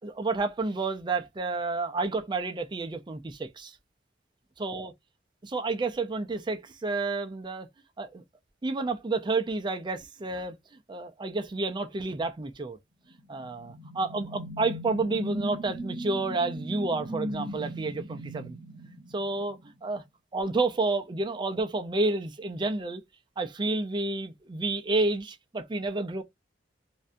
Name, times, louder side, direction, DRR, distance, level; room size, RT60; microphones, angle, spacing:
voice 1, 0.0-3.8 4.6-4.9 5.4-7.7 8.0-8.2 8.6-10.6 10.9-12.8 13.3-18.6 19.1-20.0 20.3-23.0 23.4-26.2, right 3 dB, 25° right, 0.4 m, -30 dB
sound 1, 13.2-19.7, equal, 75° right, 1.0 m, -38 dB
2.6 x 2.2 x 2.4 m
head